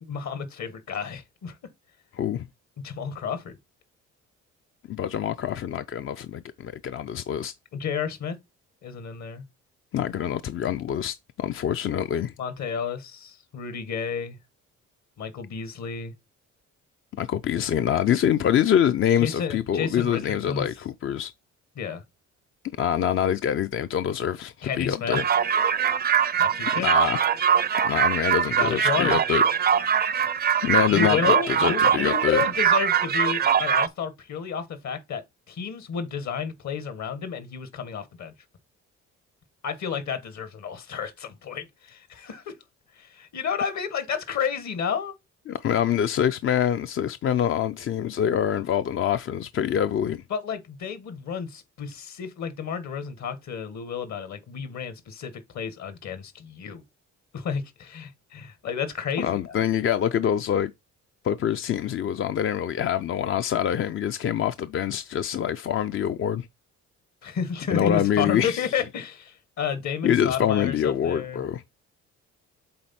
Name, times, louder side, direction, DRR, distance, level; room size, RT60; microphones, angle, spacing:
voice 1, 0.0-1.6 2.8-3.6 7.7-8.4 8.8-9.4 12.4-14.4 15.2-16.1 19.2-20.6 21.7-22.0 24.6-25.2 26.4-26.9 28.6-29.2 30.9-38.3 39.6-42.5 43.0-45.1 50.3-56.8 57.3-59.6 67.2-71.4, left 6 dB, 65° left, 1.5 m, -31 dB
voice 2, 4.9-7.5 9.9-12.3 17.2-21.3 22.8-25.3 26.8-27.2 27.8-29.4 30.6-32.4 45.5-50.2 59.2-60.7 61.2-66.5 67.7-68.7 70.0-71.6, left 9 dB, 45° left, 0.4 m, -25 dB
sound 1, 25.1-33.9, right 8 dB, 35° right, 0.5 m, -22 dB
7.6 x 3.9 x 4.2 m
cardioid pair, 90°, 30 cm